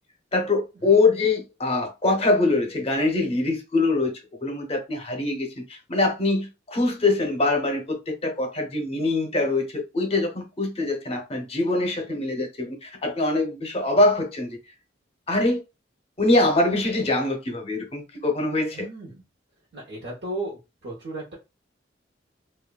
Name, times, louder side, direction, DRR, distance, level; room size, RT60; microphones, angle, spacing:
voice 1, 0.3-4.1 4.4-14.5 15.3-15.6 16.2-18.9, left 2 dB, 35° left, 0.7 m, -23 dB
voice 2, 18.7-19.2 19.7-21.3, right 2 dB, 65° right, 0.9 m, -35 dB
2.9 x 2.3 x 2.2 m
head